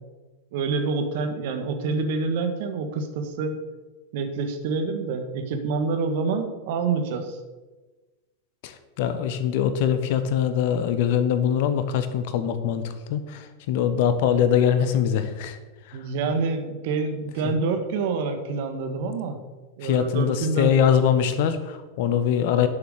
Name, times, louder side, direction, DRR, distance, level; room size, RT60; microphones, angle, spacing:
voice 1, 0.5-3.6 4.1-7.4 15.9-19.4 19.8-20.7 22.6-22.7, right 4 dB, 50° right, 6 dB, 1.5 m, -27 dB
voice 2, 8.6-15.6 15.9-16.0 17.4-17.5 19.8-22.7, left 8 dB, 50° left, 10 dB, 1.1 m, -23 dB
11.0 x 6.8 x 6.6 m, 1.2 s
figure-of-eight pair, 90°, 0 cm